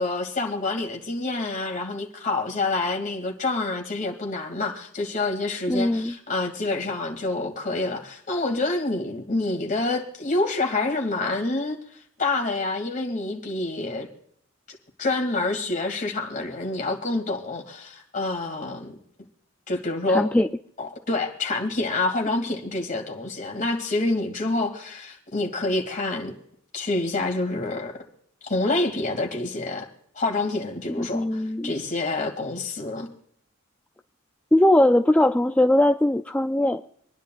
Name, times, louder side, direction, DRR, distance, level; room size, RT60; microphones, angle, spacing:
voice 1, 0.0-11.8 12.2-14.1 15.0-19.0 19.7-20.3 20.8-26.3 26.7-27.9 28.4-29.9 30.2-33.1, left 2 dB, 40° left, 3 dB, 2.4 m, -27 dB
voice 2, 5.7-6.1 20.1-20.5 30.9-31.7 34.5-36.8, left 1 dB, 5° left, 6 dB, 0.4 m, -20 dB
26.5 x 10.5 x 2.4 m, 0.67 s
head